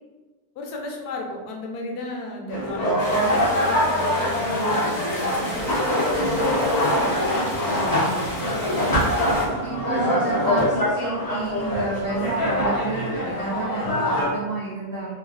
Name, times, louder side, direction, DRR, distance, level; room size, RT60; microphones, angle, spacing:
voice 1, 0.6-5.6 6.1-8.4, left 1 dB, 85° left, 1 dB, 1.1 m, -34 dB
sound 1, 2.5-14.3, left 1 dB, 20° left, 0.5 m, -23 dB
sound 2, 3.0-9.5, left 1 dB, 50° left, 1.0 m, -34 dB
voice 2, 9.6-15.2, right 3 dB, 70° right, -6 dB, 0.5 m, -30 dB
3.4 x 2.2 x 2.4 m, 1.3 s
omnidirectional pair, 1.6 m